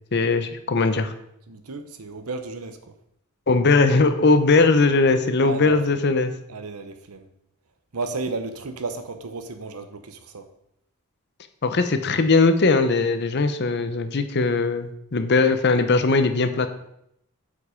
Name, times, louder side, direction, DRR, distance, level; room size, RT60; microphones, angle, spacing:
voice 1, 0.1-1.1 3.5-6.3 11.6-16.7, left 3 dB, 50° left, 10 dB, 0.7 m, -19 dB
voice 2, 1.5-2.9 5.4-6.1 6.5-7.3 7.9-10.5, right 3 dB, 85° right, 8 dB, 0.9 m, -33 dB
8.1 x 5.4 x 5.0 m, 0.77 s
head